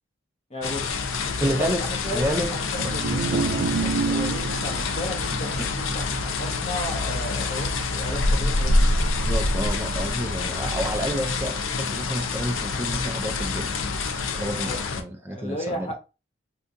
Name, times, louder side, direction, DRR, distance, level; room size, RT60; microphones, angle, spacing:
voice 1, 0.5-0.9 1.2-9.0 14.5-14.8 15.2-16.0, left 1 dB, 30° left, 0.9 m, -35 dB
sound 1, 0.6-15.0, left 3 dB, 90° left, 0.5 m, -26 dB
voice 2, 1.4-1.8 2.1-2.5 2.8-2.9 9.3-13.7 14.3-15.9, right 1 dB, 10° right, 0.3 m, -29 dB
sound 2, 2.7-9.0, right 4 dB, 80° right, 0.5 m, -31 dB
3.5 x 2.7 x 2.5 m
head